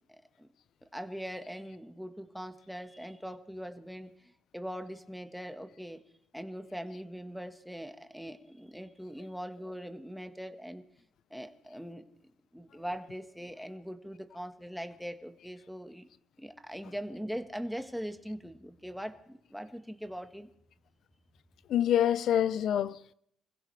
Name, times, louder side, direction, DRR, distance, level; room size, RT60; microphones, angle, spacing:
voice 1, 0.1-0.5 0.9-6.0 6.3-10.8 11.3-16.1 16.4-20.5, equal, ahead, 1.5 m, -41 dB
voice 2, 21.7-23.1, left 10 dB, 70° left, 0.6 m, -26 dB
26.5 x 16.0 x 3.4 m
cardioid pair, 90°, 0 cm